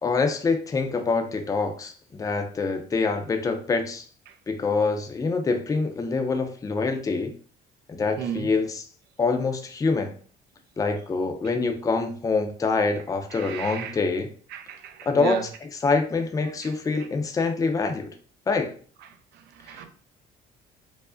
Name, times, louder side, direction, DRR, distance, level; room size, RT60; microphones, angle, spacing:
voice 1, 0.0-4.0 4.5-7.3 7.9-8.8 9.2-10.1 10.8-14.3 15.1-15.4 15.8-18.1 18.5-18.7, left 4 dB, 20° left, 5 dB, 0.5 m, -25 dB
voice 2, 8.2-8.5 13.3-14.0 14.5-15.5 16.6-16.7 19.5-19.9, right 8 dB, 80° right, 7 dB, 0.6 m, -33 dB
4.7 x 2.0 x 2.5 m, 0.43 s
cardioid pair, 110°, 17 cm